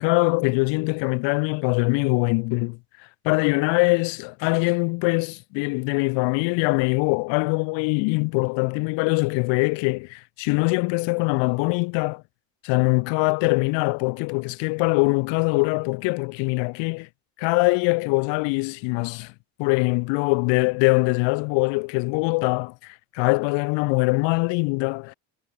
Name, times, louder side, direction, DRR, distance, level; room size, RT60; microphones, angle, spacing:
voice 1, 0.0-2.8 3.2-12.2 12.6-17.1 17.4-19.3 19.6-25.1, left 30 dB, 85° left, 1.7 m, -23 dB
supercardioid pair, 90°, 43 cm